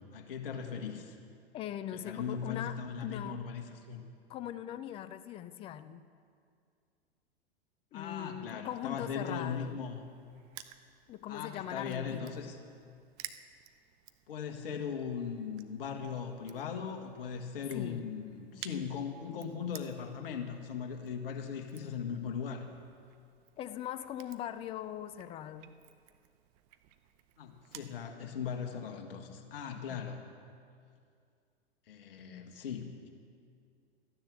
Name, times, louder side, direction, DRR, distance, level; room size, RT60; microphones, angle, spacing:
voice 1, 0.1-1.2 1.9-4.1 7.9-10.1 11.3-12.6 14.3-22.7 27.4-30.2 31.9-33.1, left 6 dB, 60° left, 5 dB, 1.8 m, -39 dB
voice 2, 1.5-3.4 4.3-6.0 7.9-9.8 11.1-12.4 17.7-18.1 23.6-25.7 29.9-30.1, left 11 dB, 20° left, 13 dB, 0.4 m, -41 dB
Crushing, 9.4-28.0, right 12 dB, 40° right, 0.8 m, -55 dB
14.0 x 10.5 x 6.9 m, 2.3 s
figure-of-eight pair, 105°, 32 cm